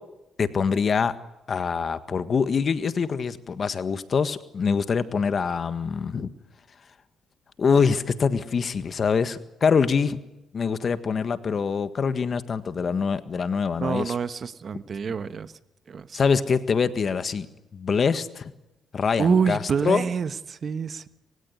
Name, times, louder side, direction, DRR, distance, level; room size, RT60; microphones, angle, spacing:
voice 1, 0.4-1.1 1.5-6.3 7.6-10.2 10.5-14.1 16.1-17.5 17.7-18.5 18.9-19.6 19.8-20.0, left 5 dB, 50° left, 12 dB, 1.7 m, -24 dB
voice 2, 13.8-15.5 15.9-16.2 19.2-21.1, right 6 dB, 50° right, 13 dB, 1.2 m, -26 dB
27.5 x 16.5 x 9.6 m, 0.93 s
supercardioid pair, 70°, 0 cm